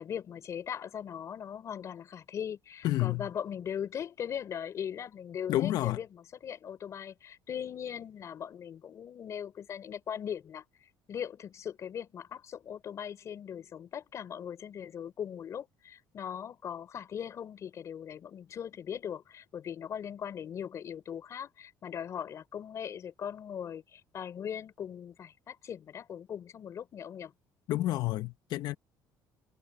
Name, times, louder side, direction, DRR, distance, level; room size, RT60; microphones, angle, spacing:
voice 1, 0.0-10.6 11.1-27.3, left 8 dB, 45° left, 3.6 m, -39 dB
voice 2, 2.8-3.3 5.5-6.0 27.7-28.7, left 15 dB, 65° left, 1.0 m, -29 dB
cardioid pair, 130°, 7 cm